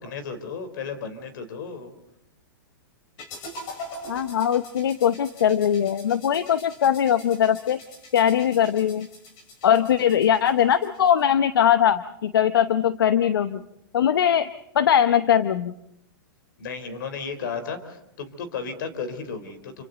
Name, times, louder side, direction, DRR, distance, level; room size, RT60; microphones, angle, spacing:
voice 1, 0.0-1.9 16.6-19.9, left 5 dB, 65° left, 9 dB, 4.0 m, -34 dB
sound 1, 3.2-11.2, left 1 dB, 40° left, 5.7 m, -43 dB
voice 2, 4.1-7.8 8.1-9.1 9.6-13.6 13.9-14.5 14.7-15.7, left 9 dB, 85° left, 12 dB, 0.9 m, -21 dB
28.5 x 26.0 x 4.0 m, 0.78 s
hypercardioid pair, 140°, 12 cm